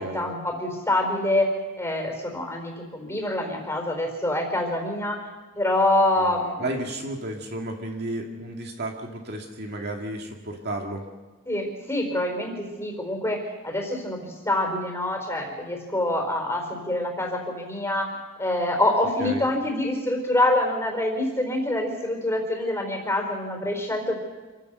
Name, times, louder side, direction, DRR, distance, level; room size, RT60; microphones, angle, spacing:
voice 1, 0.0-5.2 5.5-6.6 11.5-24.2, left 1 dB, 10° left, 2 dB, 4.4 m, -26 dB
voice 2, 6.6-11.0 19.2-19.4, right 1 dB, 50° right, 1 dB, 2.2 m, -32 dB
27.0 x 16.0 x 6.8 m, 1.3 s
head